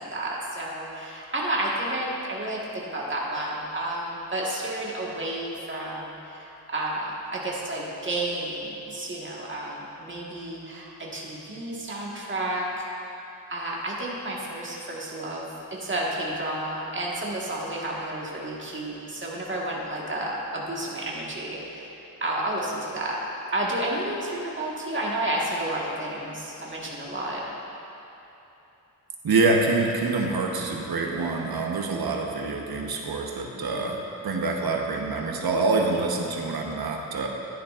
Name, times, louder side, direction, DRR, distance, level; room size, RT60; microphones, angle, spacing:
voice 1, 0.0-12.9 13.5-21.9 22.2-23.2 23.5-27.4, right 1 dB, 30° right, -4 dB, 1.6 m, -31 dB
voice 2, 29.2-34.0 34.2-37.3, right 3 dB, 80° right, 1 dB, 1.1 m, -26 dB
14.5 x 10.5 x 2.5 m, 3.0 s
wide cardioid pair, 150°, 36 cm